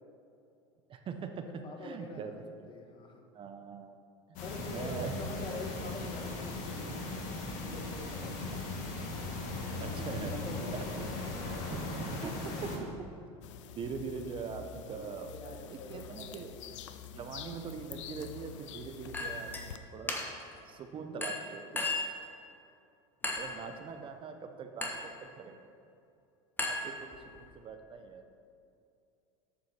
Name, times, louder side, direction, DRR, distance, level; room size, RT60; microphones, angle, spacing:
voice 1, 0.9-1.5 1.8-2.3 2.6-2.7 3.3-4.0 4.5-5.1 8.5-8.8 9.8-10.3 10.7-10.8 11.7-12.9 13.8-16.5 17.1-20.2 20.6-22.0 23.3-25.6 26.6-28.3, right 6 dB, 35° right, 6 dB, 0.6 m, -42 dB
voice 2, 1.4-3.2 4.4-7.1 7.5-8.6 9.7-10.9 11.3-11.5 14.8-16.8 20.8-21.2 23.2-23.6, left 3 dB, 35° left, 4 dB, 1.1 m, -46 dB
sound 1, 4.4-12.8, left 2 dB, 55° left, 1.6 m, -38 dB
sound 2, 13.4-19.8, left 8 dB, 90° left, 0.5 m, -47 dB
Chink clink, 19.1-19.7 20.1-20.5 21.2-22.2 23.2-23.6 24.8-25.1 26.6-27.4, left 2 dB, 15° left, 1.1 m, -35 dB
8.3 x 5.2 x 5.9 m, 2.6 s
supercardioid pair, 110°, 15 cm